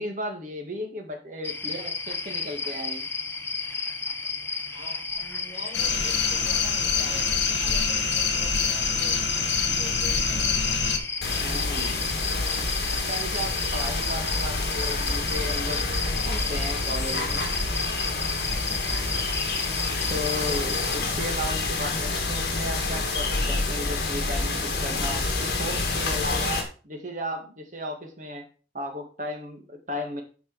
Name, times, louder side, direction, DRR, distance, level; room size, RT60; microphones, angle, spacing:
voice 1, 0.0-3.1 11.4-12.3 12.6-16.0 16.2-17.5 20.1-28.4 28.7-30.2, equal, 45° right, 3 dB, 2.0 m, -35 dB
sound 1, 1.4-21.0, left 4 dB, 15° left, 0.8 m, -32 dB
voice 2, 4.7-7.3 7.6-9.2 9.8-10.8 18.9-19.2, equal, 40° left, -9 dB, 4.6 m, -44 dB
sound 2, 5.7-11.0, left 6 dB, 80° left, 1.7 m, -25 dB
sound 3, 11.2-26.6, left 3 dB, 60° left, 2.0 m, -28 dB
9.4 x 5.2 x 4.8 m, 0.37 s
head